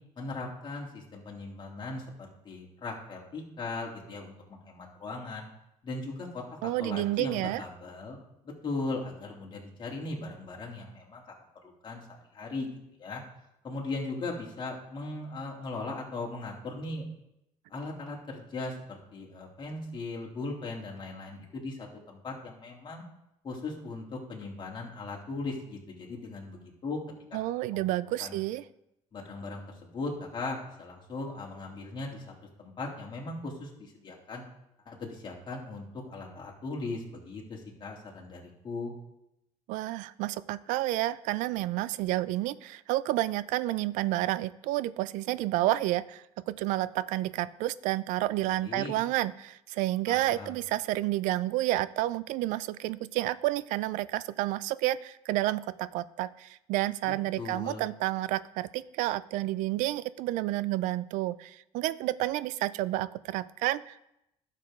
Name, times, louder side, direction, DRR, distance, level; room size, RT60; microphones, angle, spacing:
voice 1, 0.2-5.4 5.8-8.2 8.4-11.3 11.6-12.7 13.0-13.2 13.6-17.1 17.7-23.0 23.4-27.0 27.6-27.9 28.2-28.4 29.1-32.3 32.6-34.4 34.8-38.9 48.5-48.9 50.0-50.5 57.4-57.8, left 3 dB, 40° left, -2 dB, 2.8 m, -38 dB
voice 2, 6.6-7.6 27.3-28.6 39.7-64.0, right 16 dB, 80° right, 18 dB, 0.4 m, -30 dB
11.5 x 6.7 x 3.7 m, 0.84 s
cardioid pair, 95°, 13 cm